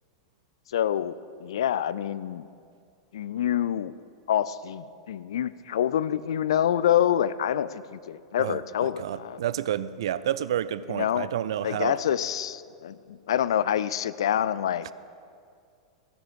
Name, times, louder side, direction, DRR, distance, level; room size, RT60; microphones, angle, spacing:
voice 1, 0.7-2.5 3.1-3.9 4.3-9.4 10.9-11.3 11.6-14.9, left 10 dB, 60° left, 17 dB, 0.4 m, -27 dB
voice 2, 8.4-11.9, right 11 dB, 60° right, 16 dB, 0.4 m, -30 dB
14.5 x 9.8 x 5.4 m, 2.3 s
figure-of-eight pair, 95°, 3 cm